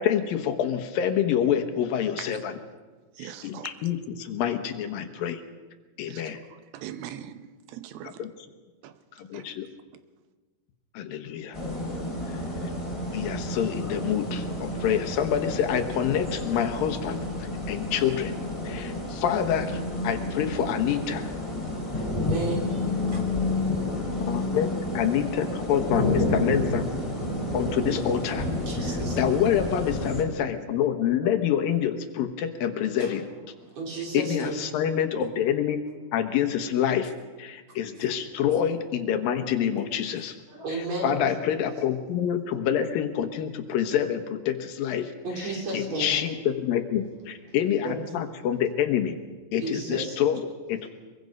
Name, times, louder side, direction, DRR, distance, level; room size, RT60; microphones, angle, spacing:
voice 1, 0.0-2.5 3.2-5.4 6.0-6.4 8.0-8.3 9.2-9.7 10.9-11.6 12.3-12.7 13.1-18.4 18.6-21.3 23.1-23.2 24.2-24.7 24.9-26.9 27.5-28.5 28.9-33.3 34.1-35.8 36.1-37.1 37.4-40.4 41.0-45.1 45.7-49.2 49.5-50.9, left 9 dB, 75° left, 3.0 m, -27 dB
voice 2, 3.1-3.7 6.1-6.2 6.5-8.3 8.8-8.9 9.3-9.5, right 11 dB, 85° right, 2.7 m, -41 dB
sound 1, 11.5-30.2, left 1 dB, 10° left, 2.5 m, -30 dB
voice 3, 22.2-23.3 23.5-23.6 28.7-29.4 33.0-33.2 33.6-34.7 39.6-39.7 40.5-41.3 45.2-46.2 47.8-48.0 49.6-50.2, right 3 dB, 45° right, 5.1 m, -33 dB
23.0 x 23.0 x 5.4 m
omnidirectional pair, 4.2 m